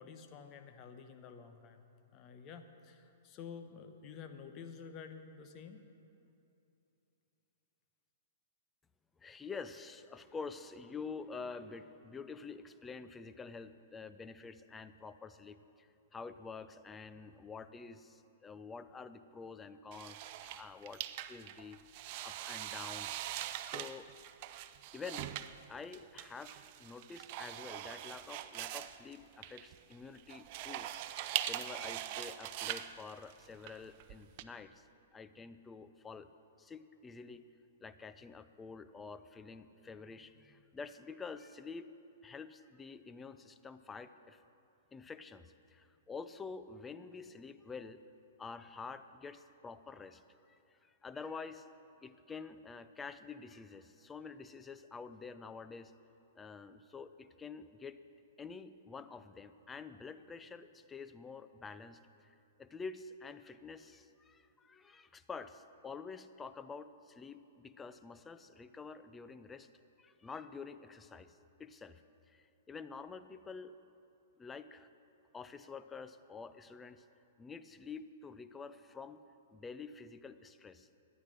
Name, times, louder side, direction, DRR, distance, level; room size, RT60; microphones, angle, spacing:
voice 1, 0.0-1.9 2.1-5.8, left 6 dB, 35° left, 7 dB, 1.0 m, -50 dB
voice 2, 9.2-21.0 21.3-21.8 22.2-23.1 23.6-24.1 24.9-25.4 25.7-34.8 35.1-36.3 36.6-37.4 37.8-41.9 42.2-44.4 44.9-48.0 48.4-50.2 50.5-51.7 52.0-55.9 56.4-58.0 58.4-69.7 70.0-72.0 72.3-73.8 74.4-74.9 75.3-77.0 77.4-79.2 79.5-80.9, left 5 dB, 15° left, 12 dB, 0.5 m, -48 dB
sound 1, 19.9-34.4, right 13 dB, 45° right, 0.5 m, -42 dB
13.0 x 9.9 x 6.6 m, 2.8 s
figure-of-eight pair, 110°, 0 cm